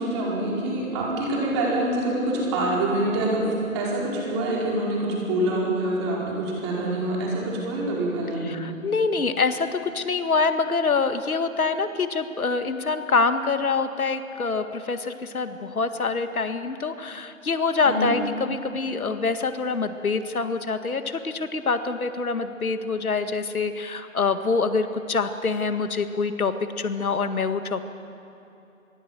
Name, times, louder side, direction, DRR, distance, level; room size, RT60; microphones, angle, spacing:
voice 1, 0.0-3.5 3.7-8.4 17.8-18.1, right 1 dB, 20° right, -4 dB, 5.0 m, -25 dB
voice 2, 8.4-27.8, left 4 dB, 80° left, 8 dB, 1.9 m, -25 dB
26.0 x 21.5 x 7.6 m, 2.8 s
hypercardioid pair, 165°, 42 cm